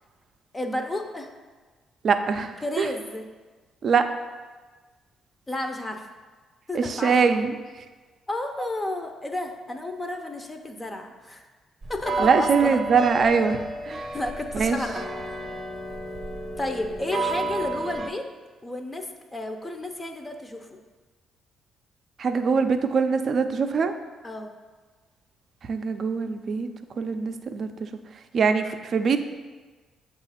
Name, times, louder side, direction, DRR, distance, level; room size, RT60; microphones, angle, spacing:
voice 1, 0.5-1.3 2.6-3.3 5.5-6.1 6.7-7.2 8.3-11.4 11.9-12.8 14.1-15.1 16.6-18.3 18.6-20.8 24.2-24.5, left 1 dB, 20° left, 4 dB, 0.6 m, -32 dB
voice 2, 2.0-2.9 3.8-4.1 6.7-7.8 12.2-14.1 14.5-14.8 22.2-23.9 25.7-26.7 27.0-27.9 28.3-29.2, right 5 dB, 55° right, 8 dB, 0.4 m, -23 dB
sound 1, 11.8-18.1, right 2 dB, 25° right, 0.7 m, -31 dB
7.2 x 2.4 x 5.5 m, 1.3 s
cardioid pair, 90°, 0 cm